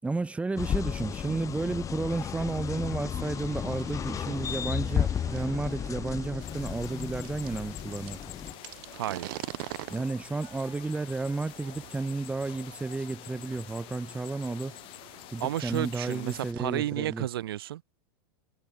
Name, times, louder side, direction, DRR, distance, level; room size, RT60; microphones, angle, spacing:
voice 1, 0.0-8.2 9.9-14.8 15.3-17.2, right 3 dB, 10° right, 4.5 m, -32 dB
sound 1, 0.6-8.5, left 8 dB, 25° left, 3.5 m, -33 dB
sound 2, 3.1-17.2, right 24 dB, 60° right, 6.9 m, -47 dB
sound 3, 6.4-16.5, left 20 dB, 45° left, 5.7 m, -47 dB
voice 2, 8.9-9.4 15.4-17.8, right 13 dB, 75° right, 2.4 m, -32 dB
hypercardioid pair, 120°, 12 cm